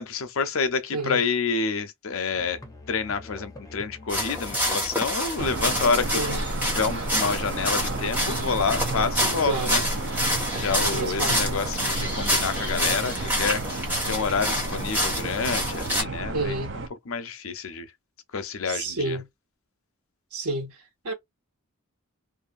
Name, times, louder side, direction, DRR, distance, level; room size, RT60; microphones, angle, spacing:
voice 1, 0.0-2.6 2.9-6.2 6.6-9.8 10.1-16.6 17.1-17.9 18.3-19.2, left 5 dB, 65° left, 0.6 m, -28 dB
voice 2, 0.9-1.2 6.1-6.4 9.4-9.8 10.9-11.5 16.3-16.7 18.7-19.3 20.3-20.8 21.0-21.1, right 2 dB, 90° right, 1.4 m, -29 dB
Musical instrument, 2.3-7.1, left 2 dB, 15° left, 0.7 m, -46 dB
sound 1, 4.1-16.0, equal, 10° right, 1.1 m, -28 dB
sound 2, 5.4-16.9, right 2 dB, 55° right, 0.5 m, -32 dB
2.5 x 2.5 x 2.4 m
head